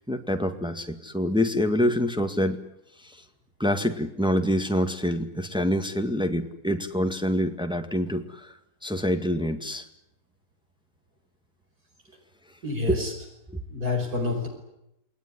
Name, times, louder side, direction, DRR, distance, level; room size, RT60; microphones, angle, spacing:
voice 1, 0.0-2.6 3.0-3.2 3.6-8.5 8.8-9.8 12.9-13.0, equal, 5° right, 6 dB, 1.8 m, -26 dB
voice 2, 12.6-13.1 13.7-14.5, left 3 dB, 65° right, 1 dB, 5.7 m, -28 dB
28.5 x 20.5 x 9.9 m, 0.83 s
omnidirectional pair, 1.8 m